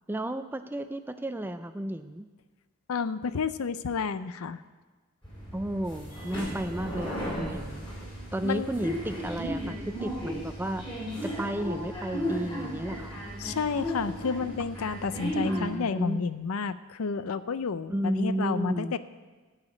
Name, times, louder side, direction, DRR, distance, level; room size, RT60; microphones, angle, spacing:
voice 1, 0.1-2.2 5.5-7.9 8.3-10.8 11.2-13.2 15.5-16.2 17.9-19.0, right 1 dB, 10° right, 10 dB, 0.3 m, -33 dB
voice 2, 2.9-4.6 8.4-8.7 13.4-19.0, left 5 dB, 75° left, 14 dB, 0.5 m, -31 dB
sound 1, 5.2-15.7, equal, 20° left, 4.0 m, -35 dB
13.5 x 5.0 x 8.6 m, 1.3 s
head